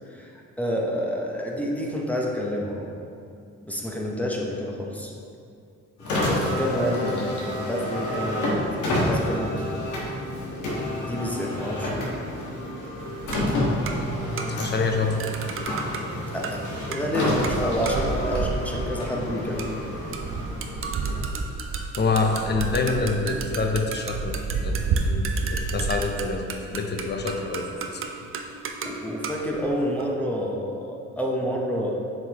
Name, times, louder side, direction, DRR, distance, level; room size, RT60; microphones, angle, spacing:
voice 1, 0.1-2.9 3.6-5.1 6.1-9.7 11.0-12.1 16.3-19.8 28.5-31.9, equal, 5° left, -2 dB, 0.8 m, -29 dB
Car, 6.0-21.4, left 1 dB, 85° left, 1.5 m, -29 dB
sound 1, 13.0-14.8 15.2-30.1, right 4 dB, 45° right, 0.5 m, -31 dB
voice 2, 14.5-15.3 22.0-28.0, left 4 dB, 35° left, 4 dB, 0.7 m, -26 dB
7.6 x 4.7 x 3.0 m, 2.4 s
cardioid pair, 90°, 30 cm